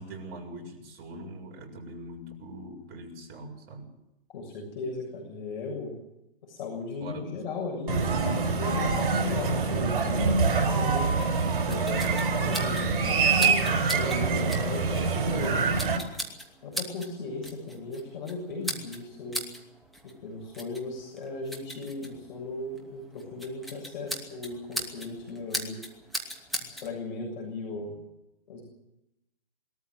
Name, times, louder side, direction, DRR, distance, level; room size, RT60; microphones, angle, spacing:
voice 1, 0.0-3.9 7.0-7.3 8.7-9.1 12.1-12.6 27.8-27.9, right 1 dB, 30° right, 0 dB, 7.2 m, -43 dB
voice 2, 4.3-6.0 6.5-11.1 11.7-15.6 16.6-19.5 20.0-25.8 26.6-27.9 28.5-28.6, left 3 dB, 50° left, -1 dB, 7.1 m, -37 dB
sound 1, 7.9-16.0, right 4 dB, 60° right, 5.5 m, -25 dB
sound 2, 11.2-26.9, equal, ahead, 2.6 m, -40 dB
22.0 x 14.0 x 9.4 m, 0.91 s
hypercardioid pair, 145°, 30 cm